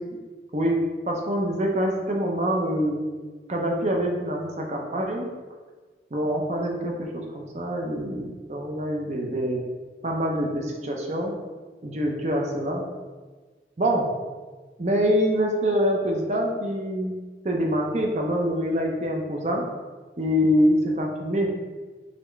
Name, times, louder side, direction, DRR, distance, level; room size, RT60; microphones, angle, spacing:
voice 1, 1.1-3.0 3.5-5.3 6.1-9.6 10.0-11.3 11.8-12.8 13.8-14.1 14.8-17.1 17.4-19.7 20.2-21.5, equal, 40° right, 0 dB, 0.6 m, -25 dB
4.1 x 3.4 x 3.2 m, 1.3 s
head